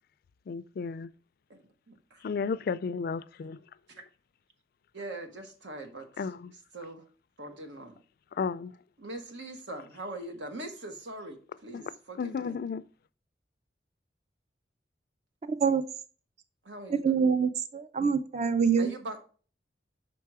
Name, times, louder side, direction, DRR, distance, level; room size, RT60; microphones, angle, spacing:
voice 1, 0.5-1.1 2.2-3.6 6.2-6.5 8.3-8.7 11.7-11.8 12.2-12.8, left 5 dB, 55° left, 0.3 m, -33 dB
voice 2, 1.9-2.4 3.9-4.0 4.9-6.3 6.7-7.1 7.4-8.0 9.0-12.6 16.6-17.3 18.8-19.2, right 2 dB, 85° right, 1.3 m, -42 dB
voice 3, 17.0-18.9, right 6 dB, 40° right, 0.4 m, -25 dB
6.0 x 4.7 x 4.7 m
head